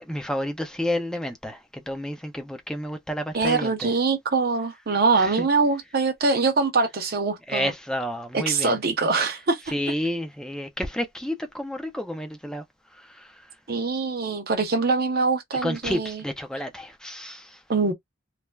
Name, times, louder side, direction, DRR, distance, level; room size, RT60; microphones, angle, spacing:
voice 1, 0.0-3.9 5.2-5.5 7.5-8.8 9.7-12.6 12.9-13.5 15.6-17.6, left 1 dB, 5° left, 0.4 m, -30 dB
voice 2, 3.3-7.7 8.3-9.6 13.7-16.2 17.7-17.9, right 4 dB, 50° right, 0.6 m, -23 dB
3.2 x 2.0 x 2.2 m
head